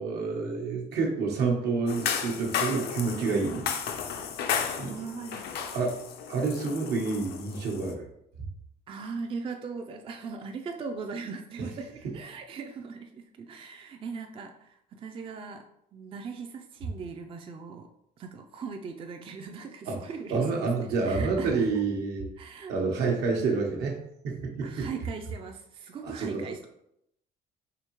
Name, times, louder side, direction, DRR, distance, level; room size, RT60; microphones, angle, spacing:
voice 1, 0.0-3.6 4.8-4.9 5.7-8.0 11.6-11.7 19.9-20.0 20.3-22.3 22.7-24.0 24.2-24.9 26.0-26.3, right 4 dB, 80° right, 0 dB, 1.0 m, -28 dB
sound 1, 1.9-7.9, left 7 dB, 70° left, 0.5 m, -33 dB
voice 2, 4.6-5.7 8.9-15.6 15.9-17.9 18.2-20.7 21.0-21.7 22.4-22.7 24.6-26.7, right 5 dB, 30° right, 5 dB, 0.4 m, -39 dB
4.9 x 2.7 x 2.9 m, 0.77 s
cardioid pair, 110°, 17 cm